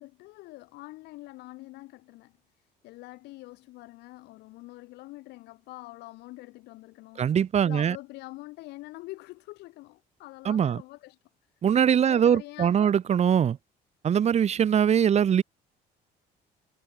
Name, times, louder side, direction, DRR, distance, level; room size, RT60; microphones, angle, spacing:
voice 1, 0.0-2.3 2.8-7.2 7.6-11.2 12.0-13.0, left 20 dB, 90° left, 2.9 m, -45 dB
voice 2, 7.2-8.0 10.4-10.8 11.6-13.6 14.0-15.4, right 8 dB, 40° right, 1.0 m, -22 dB
cardioid pair, 110°, 17 cm